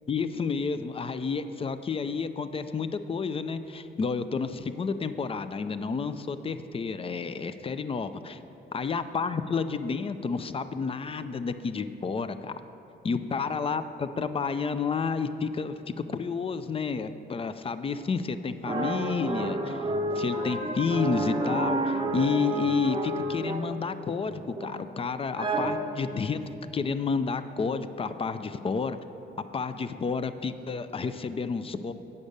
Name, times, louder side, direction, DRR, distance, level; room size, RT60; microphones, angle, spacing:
voice 1, 0.1-8.4 8.7-12.5 13.0-19.8 20.2-26.4 26.7-29.0 29.4-31.9, left 5 dB, 30° left, 11 dB, 0.4 m, -30 dB
sound 1, 18.6-23.8 24.2-24.9 25.4-26.1, right 2 dB, 25° right, 0.7 m, -30 dB
8.5 x 5.4 x 6.5 m, 2.8 s
cardioid pair, 90°, 20 cm